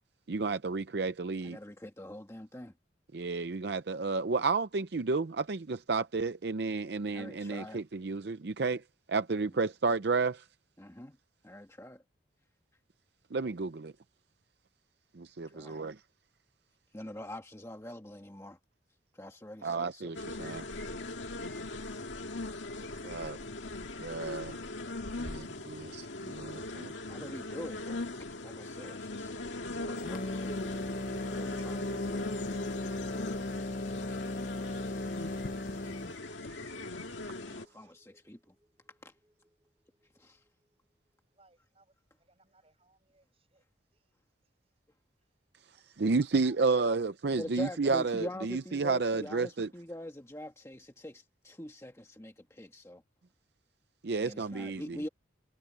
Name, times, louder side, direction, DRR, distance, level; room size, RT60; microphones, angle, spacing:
voice 1, 0.3-1.6 3.1-8.8 9.1-10.4 13.3-13.9 15.1-16.0 19.6-20.7 23.0-23.4 24.0-24.6 25.2-26.9 46.0-49.7 54.0-55.1, right 4 dB, 55° right, 0.6 m, -31 dB
voice 2, 1.4-2.7 7.1-7.8 10.8-11.2 11.4-12.0 15.5-15.8 16.9-18.6 19.1-20.1 27.1-28.0 28.4-29.4 29.7-30.5 31.3-32.3 37.4-38.5 39.0-39.1 40.1-40.4 47.4-53.0 54.1-55.1, left 1 dB, 15° left, 1.4 m, -44 dB
sound 1, 20.1-37.6, left 2 dB, 75° left, 2.0 m, -40 dB
sound 2, 29.9-36.2, left 2 dB, 45° left, 0.6 m, -37 dB
sound 3, 37.0-39.7 40.0-40.2, equal, 15° right, 3.0 m, -54 dB
voice 3, 41.3-43.6 43.9-44.0 45.2-45.3 45.7-46.6, right 2 dB, 30° right, 7.2 m, -67 dB
head